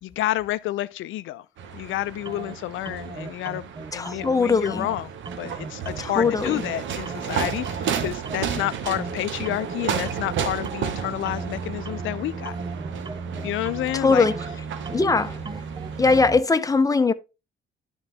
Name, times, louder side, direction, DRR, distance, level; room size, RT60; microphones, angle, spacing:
voice 1, 0.0-1.4 1.7-5.1 5.4-12.6 13.4-14.3, left 15 dB, 85° left, 0.5 m, -29 dB
sound 1, 1.6-16.2, right 7 dB, 75° right, 1.1 m, -33 dB
sound 2, 2.3-2.6 2.9-4.4 4.7-5.0 5.3-6.8 7.1-7.4 7.7-9.2 9.5-9.8 10.1-16.4, right 4 dB, 20° right, 0.6 m, -36 dB
voice 2, 3.9-4.9 6.0-6.6 13.9-14.3 14.9-15.4 16.0-17.1, left 4 dB, 15° left, 0.8 m, -20 dB
11.5 x 4.0 x 3.5 m
cardioid pair, 90°, 20 cm